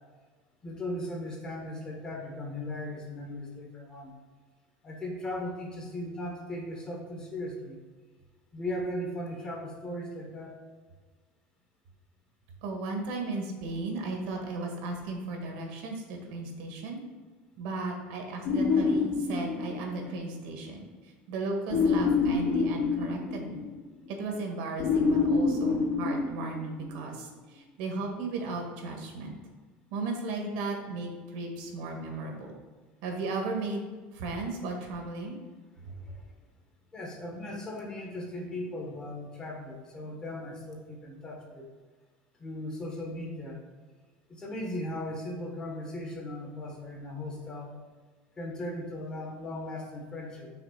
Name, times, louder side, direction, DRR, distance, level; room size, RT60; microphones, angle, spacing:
voice 1, 0.6-4.1 4.8-7.8 8.5-10.6 32.0-32.2 35.8-36.3 36.9-41.7 42.4-43.6 44.3-47.8 48.4-50.5, left 1 dB, 20° left, 0 dB, 1.2 m, -38 dB
voice 2, 12.6-17.0 17.6-20.9 21.3-23.7 24.1-29.4 29.9-32.5 33.0-35.4, right 3 dB, 75° right, 2 dB, 1.6 m, -35 dB
sound 1, 18.4-20.1 21.7-23.8 24.8-26.9, left 4 dB, 75° left, 2.2 m, -27 dB
5.9 x 3.8 x 5.8 m, 1.4 s
cardioid pair, 155°, 4 cm